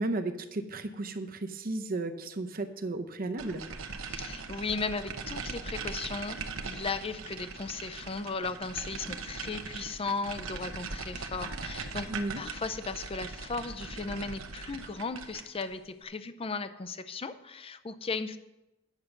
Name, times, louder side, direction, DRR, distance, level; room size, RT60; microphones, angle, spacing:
voice 1, 0.0-3.6 12.1-12.4, right 2 dB, 45° right, 8 dB, 0.7 m, -34 dB
sound 1, 3.4-15.7, right 4 dB, 80° right, 0.9 m, -40 dB
voice 2, 4.1-18.4, left 4 dB, 30° left, 12 dB, 0.5 m, -36 dB
9.8 x 6.6 x 5.9 m, 0.98 s
head